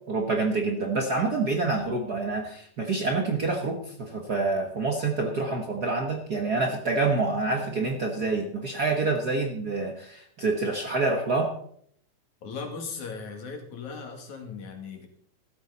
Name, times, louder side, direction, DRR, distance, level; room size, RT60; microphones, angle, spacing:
voice 1, 0.1-11.5, right 3 dB, 45° right, 3 dB, 1.3 m, -27 dB
voice 2, 12.4-15.1, left 5 dB, 75° left, 3 dB, 3.6 m, -38 dB
14.5 x 13.0 x 4.1 m, 0.65 s
omnidirectional pair, 3.4 m